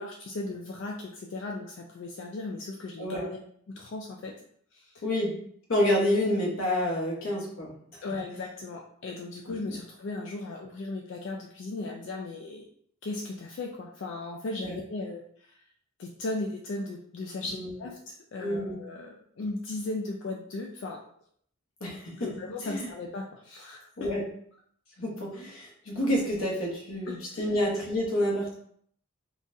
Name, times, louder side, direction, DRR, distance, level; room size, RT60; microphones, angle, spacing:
voice 1, 0.0-3.4 3.7-4.4 4.7-5.0 8.0-12.7 13.0-15.6 16.0-21.0 22.2-24.1 27.1-27.5, left 2 dB, 60° left, 0 dB, 0.3 m, -37 dB
voice 2, 5.0-5.4 5.7-7.7 14.6-14.7 17.4-17.7 18.4-18.8 21.8-22.3 22.6-22.9 24.0-24.2 25.0-28.5, left 1 dB, 85° left, -3 dB, 1.1 m, -28 dB
3.8 x 2.3 x 2.6 m, 0.63 s
head